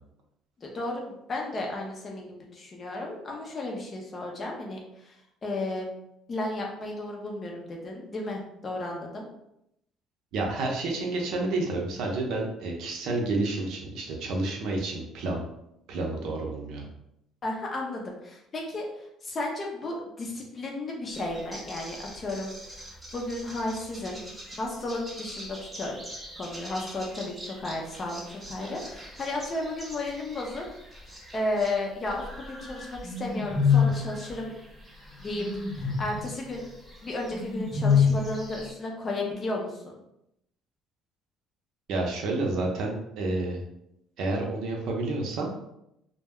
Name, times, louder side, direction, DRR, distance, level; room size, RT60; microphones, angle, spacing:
voice 1, 0.6-5.2 5.4-5.9 6.3-9.3 17.4-24.2 24.6-26.0 26.4-34.5 35.2-35.5 35.7-36.6 37.0-40.0, left 2 dB, 30° left, 0 dB, 0.5 m, -34 dB
voice 2, 10.3-15.4 15.9-16.9 41.9-43.6 44.2-45.5, right 2 dB, 65° right, 0 dB, 0.6 m, -30 dB
sound 1, 21.1-31.8 32.0-38.7, left 6 dB, 10° right, 0.6 m, -32 dB
2.2 x 2.1 x 3.5 m, 0.81 s
cardioid pair, 150°, 0 cm